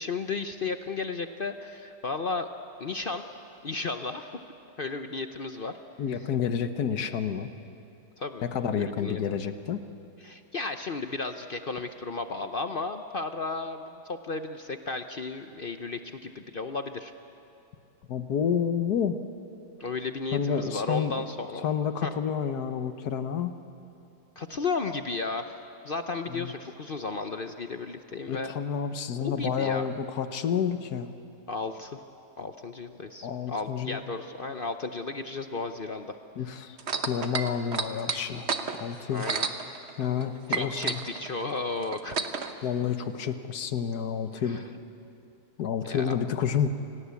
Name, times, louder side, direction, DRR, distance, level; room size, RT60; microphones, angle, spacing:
voice 1, 0.0-2.5 2.8-3.2 3.6-4.3 4.8-5.7 8.2-8.5 8.8-9.2 10.2-17.1 19.8-21.7 22.0-22.1 24.4-25.6 25.8-28.5 29.2-29.9 31.5-32.0 32.4-36.2 38.1-38.3 39.1-39.5 40.5-42.2 44.3-44.6 45.8-46.2, left 3 dB, 50° left, 7 dB, 0.6 m, -34 dB
voice 2, 6.0-7.5 8.4-9.8 18.1-19.2 20.3-21.1 21.6-23.5 26.3-26.5 28.3-31.1 33.2-34.0 36.4-36.8 37.1-38.5 38.8-39.3 40.0-41.0 42.6-44.6 45.6-46.7, left 7 dB, 65° left, 10 dB, 1.5 m, -29 dB
sound 1, 36.8-40.2 40.5-42.5 43.3-43.4, right 5 dB, 45° right, 1.2 m, -31 dB
28.5 x 18.0 x 8.4 m, 2.8 s
omnidirectional pair, 1.8 m